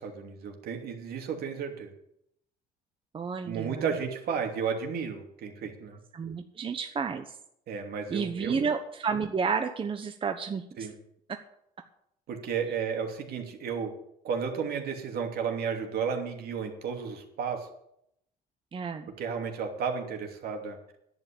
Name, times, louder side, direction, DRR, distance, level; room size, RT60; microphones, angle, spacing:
voice 1, 0.0-1.9 3.4-6.0 7.7-8.6 10.8-10.9 12.3-13.9 14.2-17.7 19.2-20.8, right 6 dB, 65° right, 3 dB, 2.9 m, -33 dB
voice 2, 3.1-3.8 6.1-7.4 8.1-10.9 11.3-11.4 18.7-19.1, right 5 dB, 30° right, 6 dB, 1.0 m, -31 dB
10.5 x 8.9 x 8.6 m, 0.74 s
cardioid pair, 110°, 17 cm